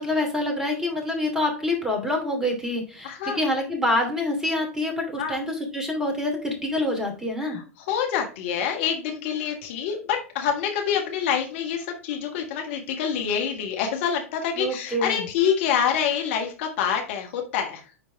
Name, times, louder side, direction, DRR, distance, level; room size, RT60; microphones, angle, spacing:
voice 1, 0.0-7.6 14.6-15.3, left 1 dB, 5° right, 2 dB, 2.7 m, -26 dB
voice 2, 3.0-3.4 5.2-5.4 7.4-7.6 7.9-17.8, left 8 dB, 55° left, 3 dB, 1.6 m, -26 dB
9.8 x 4.1 x 3.3 m, 0.37 s
figure-of-eight pair, 95°, 8 cm